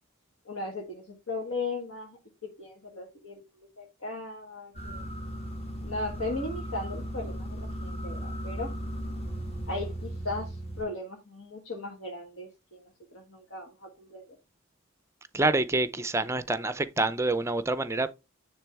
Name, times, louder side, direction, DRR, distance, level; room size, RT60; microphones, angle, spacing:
voice 1, 0.4-5.0 5.8-8.7 9.7-14.3, left 2 dB, 75° left, 1.7 m, -37 dB
sound 1, 4.7-10.8, equal, 30° left, 1.4 m, -36 dB
voice 2, 15.3-18.1, right 2 dB, 15° right, 0.5 m, -27 dB
9.9 x 3.4 x 3.5 m
head